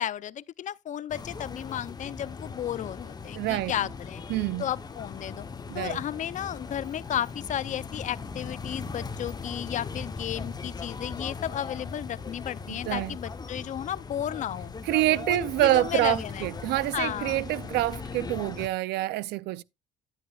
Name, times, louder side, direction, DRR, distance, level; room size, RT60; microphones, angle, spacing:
voice 1, 0.0-4.2 4.6-5.4 5.7-14.7 15.3-16.4 16.9-17.4, left 10 dB, 45° left, 0.5 m, -33 dB
sound 1, 1.1-18.7, left 4 dB, 25° left, 0.9 m, -39 dB
voice 2, 3.3-3.8 4.3-4.7 5.7-6.0 12.7-13.2 14.9-19.6, right 16 dB, 80° right, 0.5 m, -27 dB
10.5 x 10.5 x 2.4 m
cardioid pair, 110°, 17 cm